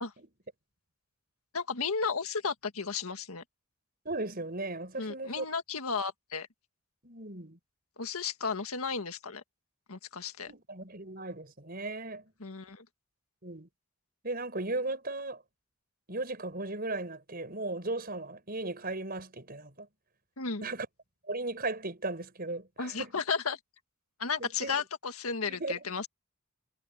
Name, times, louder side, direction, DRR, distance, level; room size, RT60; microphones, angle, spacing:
voice 1, 1.5-3.4 5.0-6.5 8.0-9.4 9.9-10.5 12.4-12.9 20.4-20.6 22.8-23.6 24.2-26.1, left 5 dB, 85° left, 1.8 m, -34 dB
voice 2, 4.0-5.4 7.0-7.6 10.5-12.2 13.4-13.7 14.2-15.4 16.1-19.9 20.6-20.9 21.3-23.1 24.4-24.8 25.4-25.8, right 2 dB, 45° right, 5.9 m, -36 dB
head